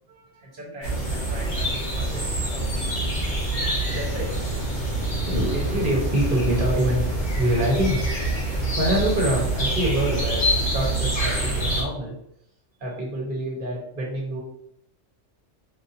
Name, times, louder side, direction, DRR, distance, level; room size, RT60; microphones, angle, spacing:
voice 1, 0.1-3.1 3.8-4.4 5.2-8.2 8.8-12.1 12.8-14.4, equal, 45° right, -3 dB, 1.3 m, -27 dB
sound 1, 0.8-11.8, right 2 dB, 75° left, 2.1 m, -26 dB
4.8 x 2.7 x 2.7 m, 0.73 s
omnidirectional pair, 1.3 m